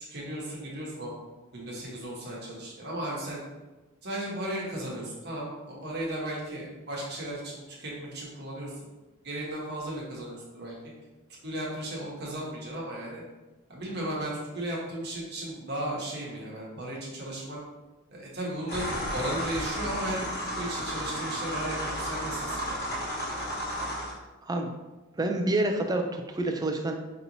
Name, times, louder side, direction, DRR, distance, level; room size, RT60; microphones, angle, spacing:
voice 1, 0.1-1.1 1.5-3.4 4.0-8.7 9.2-10.8 11.4-13.2 13.7-17.6 18.1-20.3 20.5-22.8, right 1 dB, 50° right, -4 dB, 1.1 m, -35 dB
sound 1, 18.7-24.1, equal, 50° left, 1.2 m, -33 dB
voice 2, 24.4-24.7 25.2-26.9, right 2 dB, 20° right, 4 dB, 0.3 m, -28 dB
5.3 x 2.9 x 2.7 m, 1.1 s
head